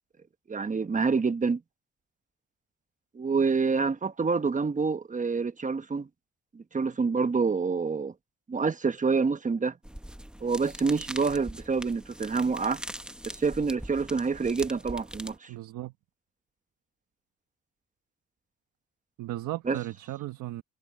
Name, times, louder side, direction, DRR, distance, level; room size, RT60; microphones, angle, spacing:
voice 1, 0.5-1.6 3.1-6.1 6.5-8.1 8.5-9.7 10.4-12.8 13.2-15.5 19.7-19.8, right 4 dB, 25° right, 1.1 m, -27 dB
sound 1, 9.8-15.4, equal, 5° right, 1.3 m, -42 dB
voice 2, 15.5-15.9 19.2-20.6, right 15 dB, 85° right, 1.4 m, -36 dB
cardioid pair, 90°, 30 cm